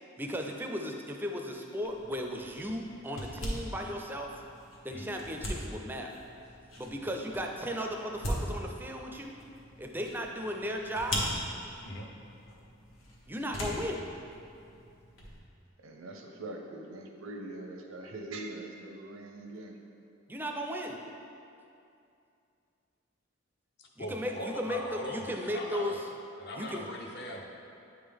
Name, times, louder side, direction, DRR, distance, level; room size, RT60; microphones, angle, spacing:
voice 1, 0.2-4.4 4.8-6.1 6.8-9.4 9.8-11.3 13.3-14.0 20.3-21.0 24.0-26.1 26.6-26.9, equal, 10° right, 2 dB, 0.4 m, -36 dB
sound 1, 1.8-15.4, equal, 75° left, 1.1 m, -40 dB
voice 2, 15.8-19.8, right 2 dB, 85° right, 2 dB, 0.7 m, -42 dB
voice 3, 23.8-26.0 26.4-27.5, left 1 dB, 55° left, 1 dB, 0.7 m, -40 dB
8.7 x 3.6 x 3.4 m, 2.6 s
head